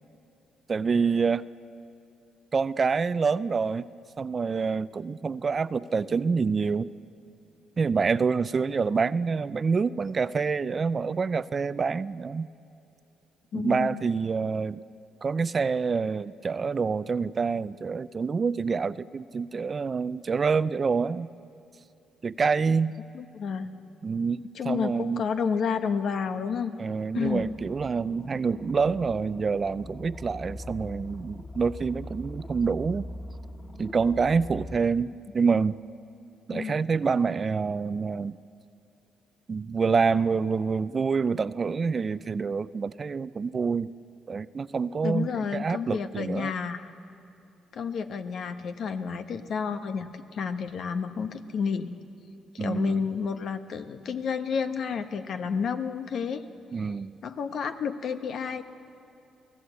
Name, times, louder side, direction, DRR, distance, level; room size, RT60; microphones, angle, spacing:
voice 1, 0.7-1.5 2.5-3.8 4.2-6.9 7.8-12.5 13.5-14.8 15.2-21.3 22.2-23.0 24.0-25.2 26.8-33.0 33.8-35.8 36.5-38.3 39.5-43.9 44.3-46.5 52.6-53.0 56.7-57.2, right 5 dB, 35° right, 16 dB, 0.5 m, -27 dB
voice 2, 13.5-14.1 23.1-23.7 24.5-26.7 27.1-27.4 36.5-36.9 45.0-46.9 47.7-52.0 52.5-56.4 57.2-58.6, left 6 dB, 65° left, 8 dB, 1.2 m, -30 dB
sound 1, 27.2-34.8, left 1 dB, 30° left, 2.7 m, -42 dB
30.0 x 18.0 x 8.3 m, 2.7 s
cardioid pair, 90°, 0 cm